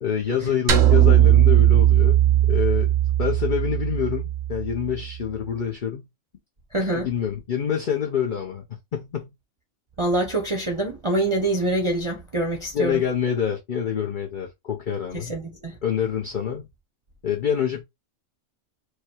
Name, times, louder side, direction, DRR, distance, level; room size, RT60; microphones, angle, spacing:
voice 1, 0.0-2.9 3.2-6.1 6.9-8.6 8.9-9.3 12.7-15.3 15.8-16.7 17.2-17.8, left 8 dB, 45° left, 0.8 m, -26 dB
sound 1, 0.7-5.1, right 12 dB, 80° right, 1.2 m, -18 dB
voice 2, 6.7-7.1 10.0-13.0 15.1-15.8, right 2 dB, 25° right, 0.8 m, -25 dB
4.8 x 2.3 x 4.4 m
omnidirectional pair, 1.4 m